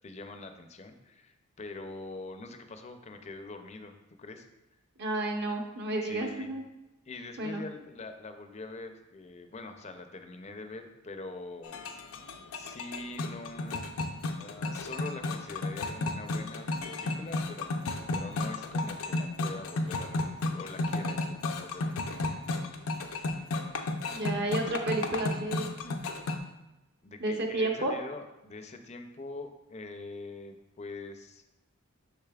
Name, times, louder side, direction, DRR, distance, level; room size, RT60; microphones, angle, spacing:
voice 1, 0.0-4.5 6.0-6.5 7.1-11.8 12.5-13.9 14.4-17.8 18.1-22.3 27.0-31.4, left 3 dB, 30° left, 7 dB, 0.5 m, -44 dB
voice 2, 5.0-6.6 7.4-7.6 24.1-26.0 27.2-28.0, right 2 dB, 50° right, 2 dB, 0.9 m, -31 dB
sound 1, 11.6-26.4, left 2 dB, 80° left, 0.6 m, -33 dB
6.6 x 6.1 x 2.4 m, 0.99 s
head